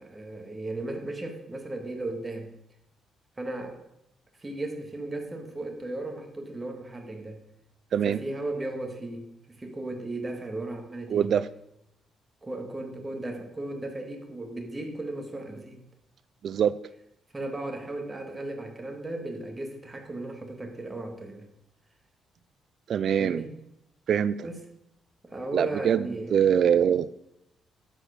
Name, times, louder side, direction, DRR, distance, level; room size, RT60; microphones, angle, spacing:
voice 1, 0.0-2.5 3.4-3.8 4.4-7.4 8.1-11.4 12.4-15.8 17.3-21.4 23.2-23.5 24.4-24.6 25.2-26.5, right 2 dB, 20° right, 3 dB, 2.2 m, -36 dB
voice 2, 11.1-11.5 16.4-16.7 22.9-23.4 24.1-24.5 25.5-27.1, right 8 dB, 60° right, 15 dB, 0.4 m, -24 dB
12.5 x 5.1 x 6.8 m, 0.82 s
cardioid pair, 90°, 0 cm